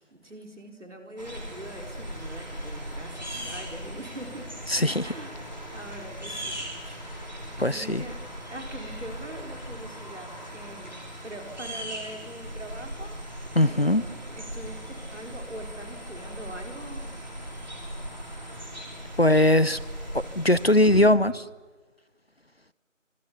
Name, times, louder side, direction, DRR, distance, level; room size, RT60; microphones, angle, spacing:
voice 1, 0.0-4.5 5.0-7.0 7.6-8.2 8.5-10.9 11.2-13.2 13.5-17.2, right 1 dB, 65° right, 4 dB, 4.3 m, -43 dB
sound 1, 1.2-21.0, equal, 35° right, 3.9 m, -38 dB
voice 2, 4.7-5.1 7.6-8.0 13.5-14.0 19.2-19.8 20.1-21.5, left 1 dB, 50° left, 18 dB, 0.7 m, -20 dB
25.5 x 24.0 x 7.2 m, 1.3 s
figure-of-eight pair, 180°, 39 cm